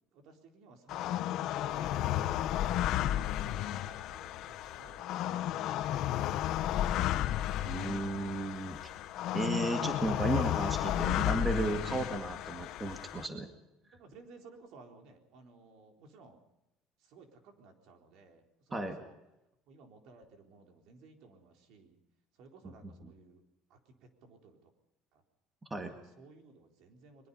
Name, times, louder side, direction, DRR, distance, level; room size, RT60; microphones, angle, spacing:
voice 1, 0.1-6.6 13.9-16.4 17.0-19.1 19.7-22.0 22.4-23.4 23.7-24.7 25.1-25.2 25.9-27.3, right 3 dB, 60° right, 4 dB, 4.0 m, -57 dB
sound 1, 0.9-13.3, left 12 dB, 55° left, 1.2 m, -33 dB
voice 2, 7.6-8.9 9.3-13.5 18.7-19.0 22.6-22.7 23.0-23.1 25.7-26.0, right 2 dB, 15° right, 5 dB, 2.0 m, -34 dB
22.5 x 21.5 x 5.5 m, 0.90 s
cardioid pair, 145°, 0 cm